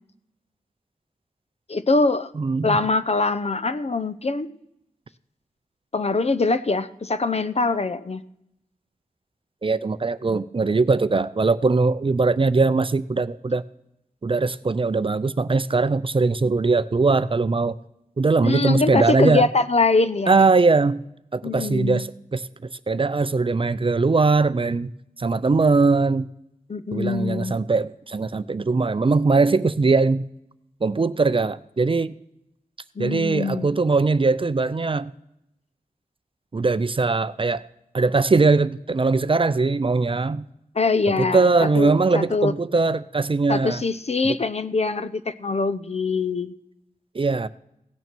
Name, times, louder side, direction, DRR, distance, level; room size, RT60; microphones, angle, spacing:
voice 1, 1.7-2.3 2.6-4.5 5.9-8.2 18.4-20.4 21.4-22.0 26.7-27.5 33.0-33.7 40.7-42.5 43.5-46.5, left 3 dB, 45° left, 13 dB, 0.6 m, -23 dB
voice 2, 2.4-2.8 9.6-13.6 14.2-17.8 18.2-19.5 20.3-21.0 21.3-22.4 22.9-24.9 25.2-26.3 26.9-30.3 30.8-32.2 33.0-35.1 36.5-37.6 37.9-40.5 41.1-43.8 44.2-44.4 47.1-47.5, right 3 dB, 40° right, 15 dB, 0.5 m, -21 dB
17.0 x 6.9 x 6.0 m, 0.80 s
wide cardioid pair, 85°, 14 cm